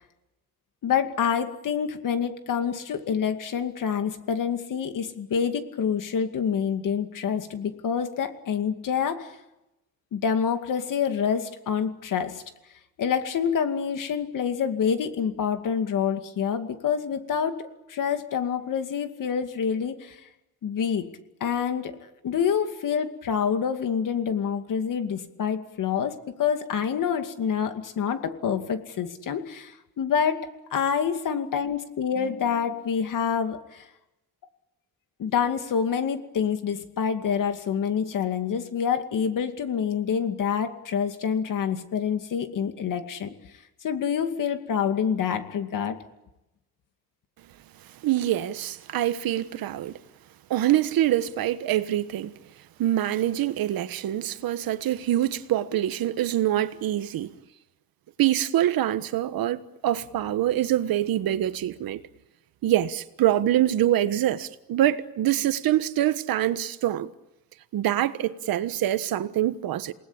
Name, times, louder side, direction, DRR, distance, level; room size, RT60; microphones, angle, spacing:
voice 1, 0.8-9.3 10.1-12.4 13.0-20.2 20.6-21.1 21.4-33.8 35.2-43.3 43.8-46.0, left 7 dB, 60° left, 2.4 m, -27 dB
voice 2, 48.0-49.9 50.5-52.3 52.8-57.3 58.2-62.0 62.6-67.1 67.7-69.9, right 12 dB, 70° right, 1.4 m, -25 dB
28.0 x 19.5 x 8.8 m
cardioid pair, 120°, 36 cm